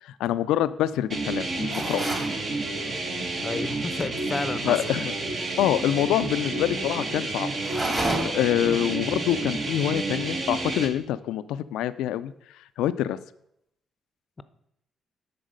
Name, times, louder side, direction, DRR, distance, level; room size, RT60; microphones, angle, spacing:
voice 1, 0.0-2.0 4.7-5.1 5.6-7.5 8.2-12.3 12.8-13.2, left 12 dB, 90° left, 14 dB, 0.3 m, -26 dB
sound 1, 1.1-10.9, right 2 dB, 50° right, 1.2 m, -30 dB
sound 2, 1.7-2.4 7.6-8.5, right 1 dB, 25° right, 2.3 m, -29 dB
voice 2, 3.4-4.9 8.6-8.8, left 4 dB, 30° left, 13 dB, 0.5 m, -32 dB
10.0 x 4.0 x 5.2 m, 0.76 s
cardioid pair, 90°, 0 cm